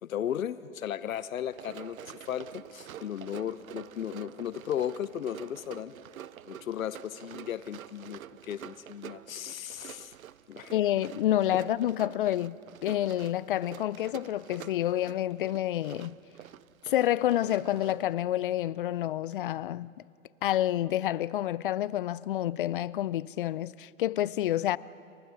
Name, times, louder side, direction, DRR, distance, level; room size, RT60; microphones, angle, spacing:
voice 1, 0.0-5.9 6.5-10.1 10.5-10.7, left 10 dB, 80° left, 0.8 m, -36 dB
Run, 1.4-18.1, right 10 dB, 85° right, 0.6 m, -48 dB
voice 2, 10.7-12.6 12.8-16.2 16.9-19.9 20.4-24.8, left 13 dB, 45° left, 0.4 m, -28 dB
29.5 x 25.0 x 3.9 m
hypercardioid pair, 130°, 40 cm